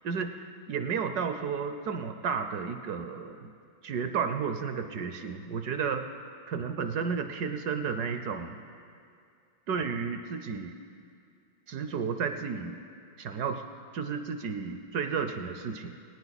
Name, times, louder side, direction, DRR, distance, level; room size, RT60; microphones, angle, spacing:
voice 1, 0.0-3.5 3.8-6.1 6.5-8.6 9.7-10.7 11.7-12.8 13.2-13.6 13.9-16.0, right 6 dB, 70° right, 7 dB, 1.0 m, -32 dB
23.5 x 9.4 x 4.1 m, 2.4 s
omnidirectional pair, 2.2 m